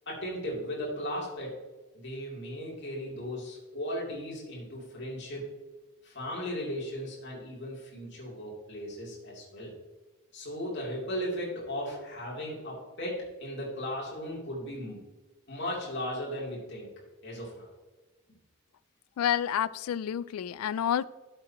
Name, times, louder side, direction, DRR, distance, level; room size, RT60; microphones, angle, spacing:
voice 1, 0.1-1.5 1.9-5.4 6.0-9.7 10.3-15.0 15.5-16.9 17.2-17.7, equal, 55° left, -4 dB, 3.1 m, -36 dB
voice 2, 19.2-21.0, left 9 dB, 90° left, 20 dB, 0.3 m, -29 dB
12.0 x 7.7 x 3.0 m, 1.2 s
head